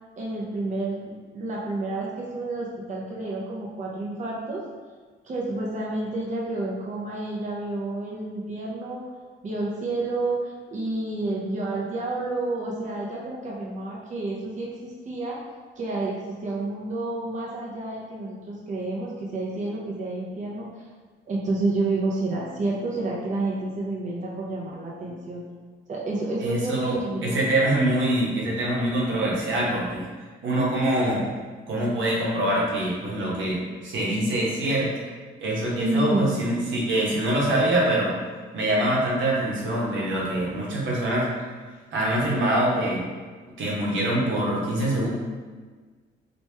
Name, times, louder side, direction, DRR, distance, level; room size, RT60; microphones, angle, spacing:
voice 1, 0.2-4.6 5.2-9.0 9.4-15.4 15.8-20.9 21.3-25.4 25.9-27.4 35.8-36.3, right 2 dB, 35° right, -5 dB, 0.7 m, -29 dB
voice 2, 26.4-27.0 27.2-30.1 30.4-31.2 31.7-34.9 35.4-38.1 38.5-41.3 41.9-43.0 43.6-45.1, right 1 dB, 75° right, -4 dB, 1.1 m, -24 dB
3.0 x 3.0 x 3.4 m, 1.5 s
cardioid pair, 90°, 20 cm